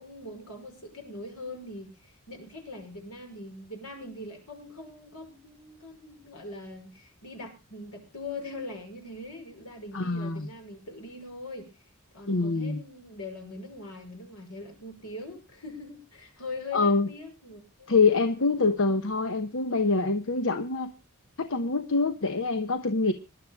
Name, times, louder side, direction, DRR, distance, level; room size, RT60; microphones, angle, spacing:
voice 1, 0.0-11.7 12.1-18.0, left 2 dB, 85° left, 4 dB, 5.8 m, -42 dB
voice 2, 9.9-10.5 12.3-12.8 16.7-17.1 17.9-20.9 21.4-23.1, left 3 dB, 65° left, 9 dB, 1.0 m, -25 dB
26.5 x 11.5 x 2.3 m, 0.29 s
head